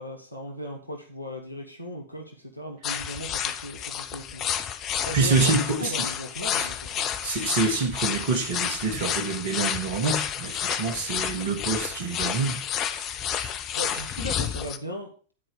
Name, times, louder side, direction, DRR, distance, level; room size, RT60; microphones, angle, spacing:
voice 1, 0.0-4.5 5.0-7.1 13.7-15.1, equal, 90° right, 1.1 m, -37 dB
sound 1, 2.8-14.8, left 9 dB, 35° left, 0.8 m, -30 dB
voice 2, 4.9-5.9 7.0-12.6 13.0-13.1 13.4-13.5, right 4 dB, 55° right, 1.6 m, -27 dB
10.0 x 4.5 x 6.5 m
figure-of-eight pair, 90°, 0 cm